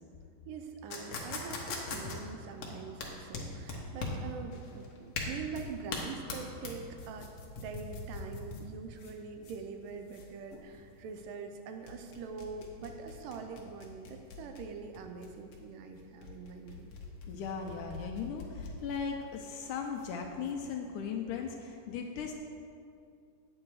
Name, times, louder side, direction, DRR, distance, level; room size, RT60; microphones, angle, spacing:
voice 1, 0.5-7.3 7.6-16.9, right 5 dB, 80° right, 5 dB, 2.2 m, -44 dB
sound 1, 0.9-20.5, left 3 dB, 60° left, 1.6 m, -42 dB
voice 2, 17.3-22.3, left 6 dB, 80° left, 2 dB, 1.9 m, -38 dB
8.7 x 8.6 x 4.7 m, 2.5 s
omnidirectional pair, 4.0 m